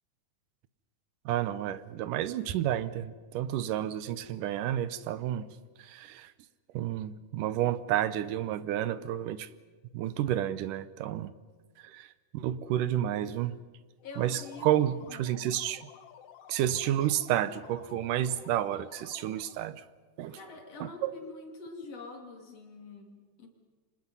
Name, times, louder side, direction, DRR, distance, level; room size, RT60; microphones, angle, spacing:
voice 1, 1.3-5.5 5.8-6.3 6.7-9.5 9.9-11.3 11.8-13.6 14.2-15.9 16.5-19.8 20.2-20.4 20.8-21.1, right 11 dB, 85° right, 2.5 m, -31 dB
sound 1, 14.0-19.7, left 9 dB, 70° left, 2.4 m, -52 dB
voice 2, 14.0-15.5 20.3-23.5, left 3 dB, 50° left, 3.8 m, -46 dB
29.0 x 25.0 x 5.5 m
omnidirectional pair, 3.6 m